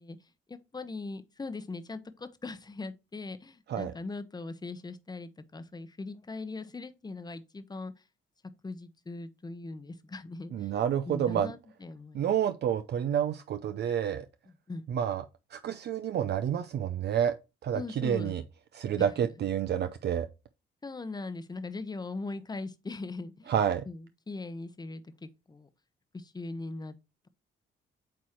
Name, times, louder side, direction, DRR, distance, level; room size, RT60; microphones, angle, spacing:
voice 1, 0.0-8.0 8.6-10.8 11.1-12.3 14.5-14.9 17.7-18.4 19.0-19.1 20.8-23.5 23.9-25.7 26.1-26.9, left 3 dB, 20° left, 0.9 m, -40 dB
voice 2, 10.5-11.5 12.1-14.3 14.9-15.2 15.5-17.3 17.6-18.4 18.7-20.3 23.5-23.8, right 9 dB, 55° right, 0.6 m, -29 dB
8.6 x 3.1 x 4.4 m
cardioid pair, 90°, 20 cm